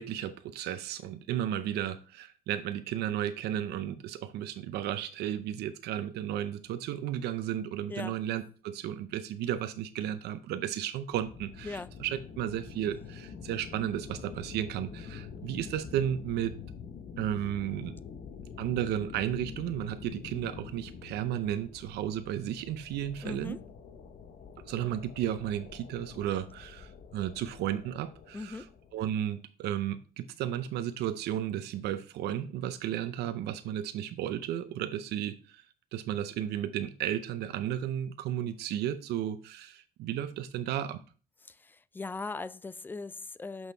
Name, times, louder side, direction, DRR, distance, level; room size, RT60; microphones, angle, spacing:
voice 1, 0.0-16.5 17.2-18.0 18.6-23.6 24.7-28.6 28.9-35.6 35.9-41.0, right 11 dB, 75° right, 0.6 m, -33 dB
sound 1, 11.1-29.3, left 6 dB, 55° left, 1.0 m, -46 dB
voice 2, 23.2-23.6 28.3-28.7 41.4-43.7, left 3 dB, 10° left, 0.3 m, -39 dB
6.1 x 5.5 x 4.4 m
cardioid pair, 110°, 17 cm